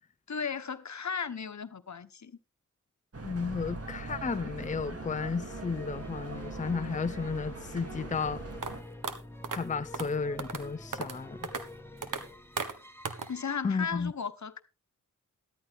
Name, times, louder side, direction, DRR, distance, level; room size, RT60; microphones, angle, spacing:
voice 1, 0.3-2.3 13.3-14.6, left 6 dB, 60° left, 1.1 m, -35 dB
sound 1, 3.1-8.8, right 3 dB, 50° right, 2.7 m, -41 dB
voice 2, 3.2-8.4 9.5-11.4 13.6-14.1, left 5 dB, 25° left, 0.6 m, -33 dB
sound 2, 3.8-13.6, left 1 dB, 5° left, 2.0 m, -48 dB
sound 3, 8.6-8.7 9.0-9.1 9.4-9.6 9.9-10.1 10.4-10.6 10.9-11.2 11.4-11.6 12.0-12.2 12.6-12.7 13.0-13.3, right 5 dB, 75° right, 1.6 m, -34 dB
13.5 x 12.5 x 3.5 m
cardioid pair, 50°, 32 cm